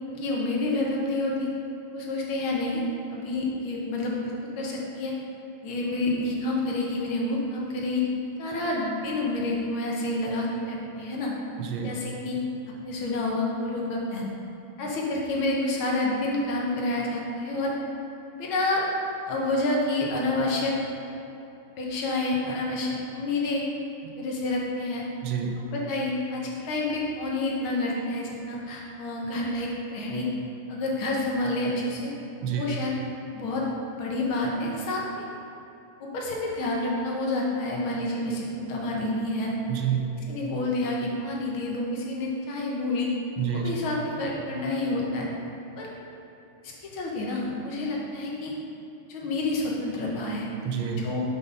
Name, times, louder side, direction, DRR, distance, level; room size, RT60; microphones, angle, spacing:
voice 1, 0.1-1.5 1.9-2.8 3.1-5.1 5.6-8.1 8.4-11.3 11.8-12.4 12.8-14.3 14.8-17.7 18.4-18.9 19.3-20.7 21.8-23.6 24.2-25.0 25.6-30.3 30.7-32.1 32.5-32.9 33.3-33.7 33.9-35.2 36.0-39.5 40.3-43.1 43.5-45.3 45.8-45.9 46.9-48.5 49.1-50.5 51.0-51.2, left 2 dB, 90° left, -2 dB, 1.9 m, -28 dB
voice 2, 11.6-12.0 24.0-24.1 25.2-25.6 32.4-32.7 39.7-40.2 43.4-43.7 50.6-51.1, right 7 dB, 90° right, 3 dB, 1.5 m, -29 dB
5.6 x 5.3 x 5.5 m, 2.9 s
omnidirectional pair, 2.2 m